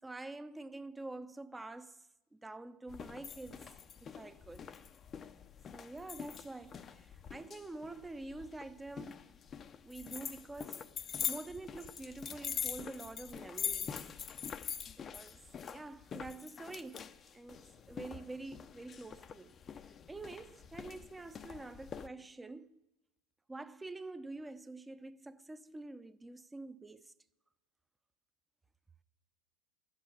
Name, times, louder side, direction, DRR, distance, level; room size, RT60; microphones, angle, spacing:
voice 1, 0.0-2.1 2.3-3.7 4.0-4.8 5.7-9.3 9.8-10.9 11.3-14.0 15.0-19.6 19.9-22.8 23.5-27.1, right 2 dB, 10° right, 0.6 m, -47 dB
sound 1, 2.9-22.1, left 7 dB, 30° left, 0.5 m, -44 dB
12.0 x 8.1 x 9.9 m
hypercardioid pair, 85°, 0 cm